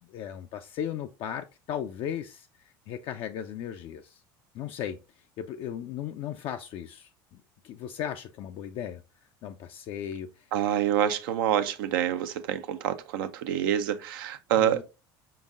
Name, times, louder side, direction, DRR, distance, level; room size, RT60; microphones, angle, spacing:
voice 1, 0.0-4.2 4.5-10.5 14.6-14.8, left 9 dB, 50° left, 0.4 m, -37 dB
voice 2, 10.5-14.8, right 10 dB, 75° right, 0.4 m, -27 dB
5.2 x 3.8 x 2.4 m
hypercardioid pair, 80°, 12 cm